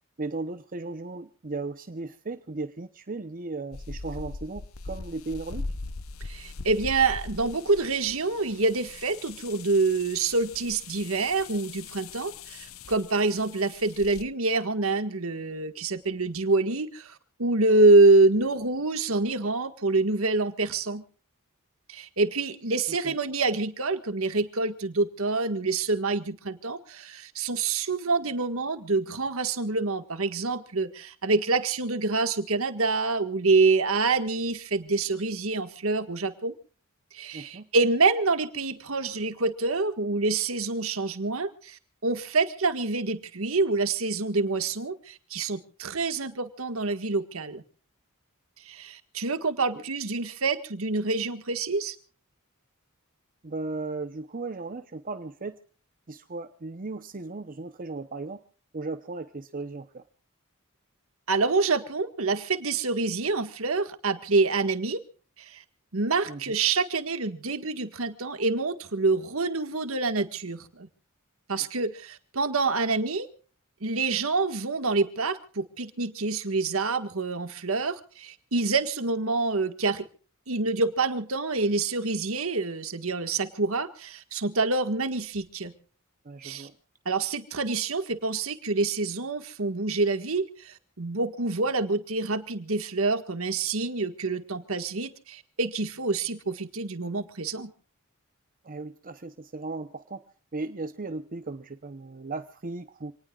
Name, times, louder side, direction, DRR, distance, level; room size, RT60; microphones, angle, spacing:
voice 1, 0.2-5.7 22.9-23.1 37.3-37.7 49.7-49.8 53.4-55.6 56.1-58.4 58.7-60.0 66.3-66.5 86.2-86.8 98.6-100.3 100.5-103.1, right 3 dB, 40° right, 9 dB, 0.8 m, -36 dB
sound 1, 3.7-14.2, left 3 dB, 70° left, 0.8 m, -41 dB
voice 2, 6.2-21.0 21.9-36.5 37.1-47.6 48.7-52.0 61.3-65.0 65.4-65.6 65.9-70.9 71.5-73.3 73.8-80.1 80.5-85.7 86.4-86.7 87.1-97.7, right 3 dB, 70° right, 9 dB, 1.7 m, -26 dB
27.5 x 19.0 x 2.4 m, 0.42 s
head